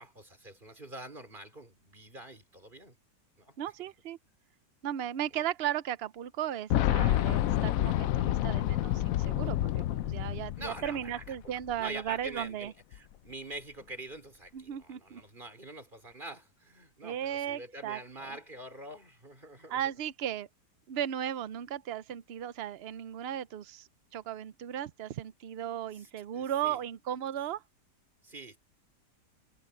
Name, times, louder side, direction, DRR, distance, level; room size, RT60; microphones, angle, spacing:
voice 1, 0.0-3.0 3.4-3.6 10.6-19.8 25.9-26.8 28.2-28.6, right 1 dB, 30° right, 5.0 m, -45 dB
voice 2, 3.6-4.2 4.8-12.7 14.5-15.2 17.0-18.4 19.7-20.5 20.9-27.6, right 10 dB, 70° right, 0.5 m, -36 dB
Boom, 6.7-11.5 11.7-11.8 12.9-13.0, left 13 dB, 70° left, 0.9 m, -28 dB
omnidirectional pair, 1.8 m